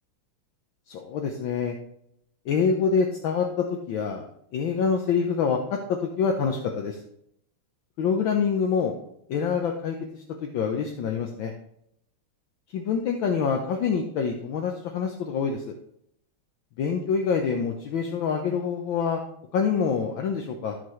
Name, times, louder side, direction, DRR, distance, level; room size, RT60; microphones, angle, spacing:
voice 1, 0.9-1.7 2.4-4.2 4.5-5.6 5.9-7.0 8.0-8.9 9.3-11.5 12.7-15.7 16.8-19.2 19.5-20.8, left 6 dB, 70° left, 2 dB, 1.5 m, -26 dB
13.5 x 6.0 x 3.1 m, 0.73 s
omnidirectional pair, 2.3 m